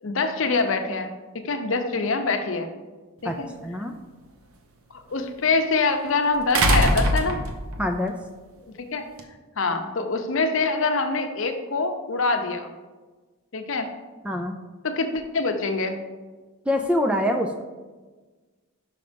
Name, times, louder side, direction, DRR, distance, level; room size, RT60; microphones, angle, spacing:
voice 1, 0.0-2.7 3.2-3.5 5.1-7.4 8.9-9.0 9.6-12.7 13.5-13.9 14.8-16.0, left 3 dB, 60° left, 6 dB, 0.7 m, -25 dB
voice 2, 3.2-3.9 7.8-8.1 9.7-9.8 14.2-14.5 16.7-17.6, left 1 dB, 5° right, 4 dB, 0.3 m, -25 dB
sound 1, 3.3-3.4 6.5-7.8 9.2-9.3, right 1 dB, 75° right, 0.8 m, -21 dB
5.7 x 5.2 x 5.1 m, 1.3 s
head